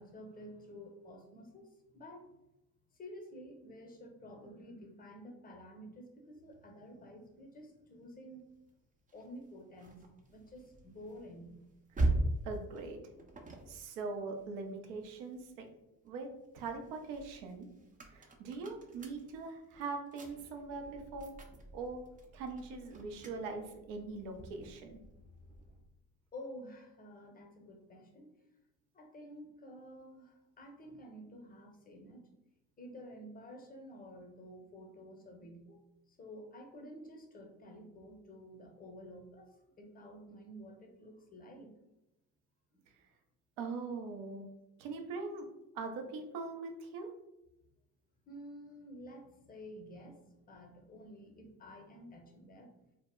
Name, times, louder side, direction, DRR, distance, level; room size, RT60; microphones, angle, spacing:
voice 1, 0.0-2.4 2.9-8.5 9.1-11.6 18.2-18.5 25.7-25.8 26.3-28.3 28.9-32.3 32.8-35.8 36.1-41.7 42.7-42.8 48.3-52.7, equal, 20° left, 3 dB, 0.6 m, -51 dB
sound 1, 9.1-15.6 16.1-25.9, right 2 dB, 20° right, 0.4 m, -41 dB
voice 2, 12.4-13.0 13.7-15.7 16.0-16.3 16.5-17.7 18.1-21.3 21.7-22.0 22.3-25.0 43.6-44.5 44.8-45.5 45.7-47.1, right 4 dB, 75° right, 4 dB, 0.6 m, -42 dB
2.0 x 2.0 x 3.5 m, 0.92 s
hypercardioid pair, 60°, 45 cm